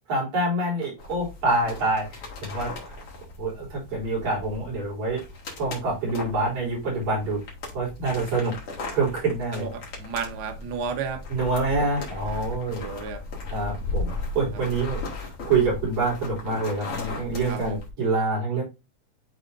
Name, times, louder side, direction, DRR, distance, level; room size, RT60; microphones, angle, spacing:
voice 1, 0.1-3.0 3.4-5.2 5.6-7.4 7.7-8.5 8.9-9.7 11.3-12.9 13.5-15.0 15.4-18.6, right 3 dB, 60° right, -4 dB, 4.6 m, -26 dB
sound 1, 1.0-17.9, left 3 dB, 50° left, 2.7 m, -37 dB
voice 2, 9.5-11.2 12.7-13.2 14.5-14.6 17.5-17.8, right 6 dB, 85° right, 5 dB, 0.9 m, -33 dB
11.0 x 3.9 x 2.6 m, 0.24 s
omnidirectional pair, 3.7 m